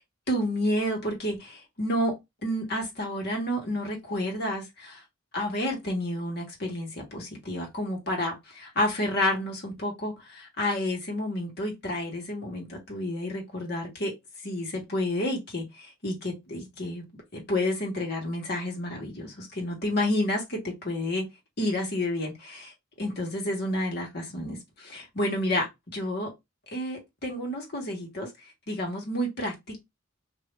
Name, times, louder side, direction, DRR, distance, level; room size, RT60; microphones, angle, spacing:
voice 1, 0.3-2.2 2.4-5.0 5.3-14.1 14.4-17.0 17.3-21.2 21.6-26.3 26.7-28.3 28.7-29.8, left 1 dB, 50° left, 1.4 m, -30 dB
2.7 x 2.6 x 3.2 m
head